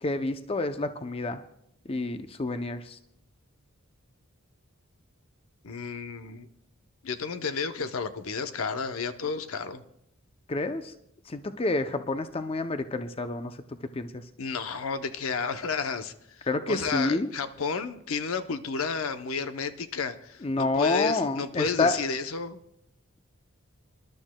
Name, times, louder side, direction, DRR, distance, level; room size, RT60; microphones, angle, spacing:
voice 1, 0.0-1.4 1.9-3.0 10.5-10.9 11.3-13.5 13.9-14.1 16.5-17.3 20.4-22.0, left 3 dB, 25° left, 9 dB, 0.5 m, -28 dB
voice 2, 5.6-6.5 7.0-9.8 14.4-16.1 16.4-22.6, left 5 dB, 80° left, 10 dB, 0.7 m, -31 dB
26.5 x 11.5 x 2.2 m, 0.75 s
head